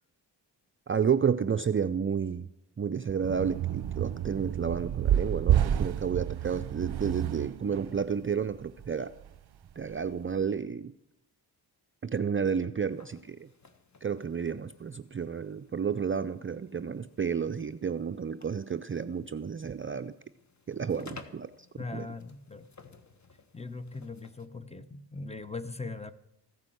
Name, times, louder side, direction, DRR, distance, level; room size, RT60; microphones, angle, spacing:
voice 1, 0.9-2.5 2.8-9.1 9.8-10.9 12.0-13.5 14.0-20.1 20.7-21.5 21.9-22.1, right 7 dB, 30° right, 10 dB, 0.5 m, -31 dB
sound 1, 3.2-8.0 8.6-8.9 9.2-9.4 9.9-10.0, right 10 dB, 65° right, 0.7 m, -29 dB
sound 2, 12.9-24.5, left 4 dB, 40° left, 1.5 m, -56 dB
voice 2, 21.8-22.7 23.5-26.1, left 3 dB, 15° left, 13 dB, 0.9 m, -40 dB
15.0 x 9.7 x 7.9 m, 0.83 s
cardioid pair, 85°, 43 cm